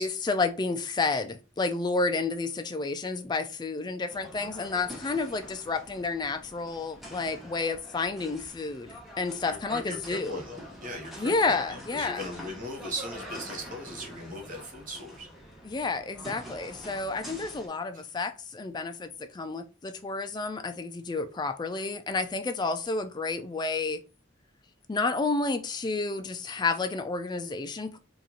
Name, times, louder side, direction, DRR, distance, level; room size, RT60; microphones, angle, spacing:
voice 1, 0.0-10.4 11.2-12.2 15.6-24.0 24.9-28.0, left 3 dB, 20° left, 0.3 m, -30 dB
sound 1, 4.1-17.7, equal, ahead, 0.8 m, -46 dB
voice 2, 9.4-15.3, equal, 45° right, 1.0 m, -39 dB
2.9 x 2.5 x 3.8 m
head